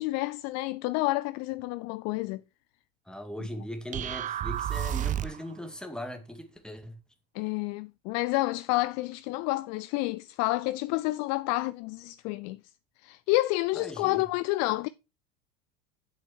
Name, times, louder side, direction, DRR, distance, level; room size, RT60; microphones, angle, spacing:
voice 1, 0.0-2.4 7.3-12.6 13.0-14.9, left 20 dB, 45° left, 0.4 m, -29 dB
voice 2, 3.1-7.0 13.8-14.3, left 1 dB, ahead, 2.0 m, -39 dB
sound 1, 3.9-5.5, right 11 dB, 20° right, 0.4 m, -31 dB
8.5 x 7.5 x 4.5 m
figure-of-eight pair, 75°, 38 cm